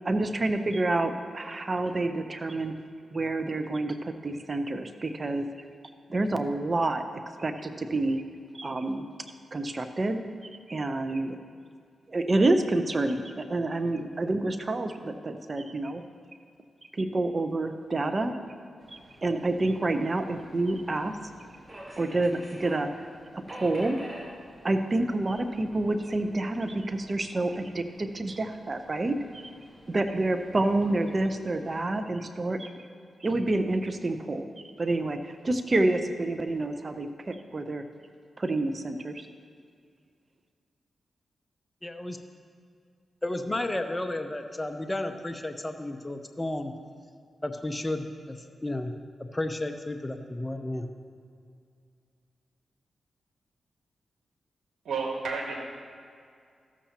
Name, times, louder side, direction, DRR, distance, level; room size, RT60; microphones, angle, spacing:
voice 1, 0.0-2.8 3.1-5.5 6.1-7.0 7.4-8.2 8.5-9.1 9.5-10.2 10.7-11.4 12.1-16.0 16.9-18.4 18.9-21.2 22.0-22.9 23.5-24.0 24.6-29.4 29.9-32.7 33.2-34.5 34.8-37.8 38.4-39.3, right 2 dB, 40° right, 8 dB, 0.7 m, -28 dB
Subway metro underground, 18.8-31.8, equal, 25° right, 2.5 m, -49 dB
voice 2, 41.8-42.2 43.2-46.7 47.4-48.9 49.3-50.9, left 1 dB, 20° left, 6 dB, 0.7 m, -32 dB
voice 3, 54.8-55.6, right 4 dB, 80° right, 0 dB, 1.5 m, -31 dB
14.5 x 7.2 x 2.9 m, 2.3 s
cardioid pair, 50°, 0 cm